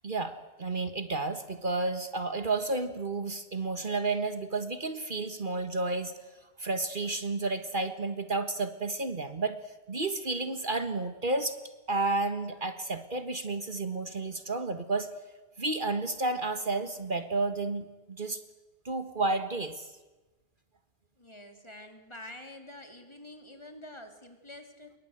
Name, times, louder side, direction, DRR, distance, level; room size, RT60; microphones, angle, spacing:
voice 1, 0.0-6.2 6.6-9.6 9.9-11.6 11.9-15.1 15.6-18.4 18.9-19.9, right 3 dB, 50° right, 10 dB, 1.7 m, -31 dB
voice 2, 21.2-24.9, left 1 dB, 25° left, 5 dB, 3.3 m, -47 dB
27.5 x 23.0 x 8.0 m, 1.2 s
omnidirectional pair, 1.1 m